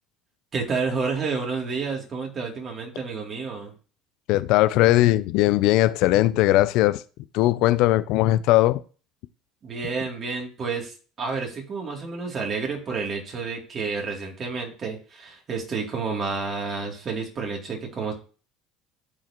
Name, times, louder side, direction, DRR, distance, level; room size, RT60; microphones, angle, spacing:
voice 1, 0.5-3.7 9.6-18.1, right 4 dB, 40° right, 3.0 m, -30 dB
voice 2, 4.3-7.0 7.3-8.8, left 16 dB, 70° left, 0.5 m, -19 dB
13.5 x 4.7 x 3.1 m
supercardioid pair, 85°, 0 cm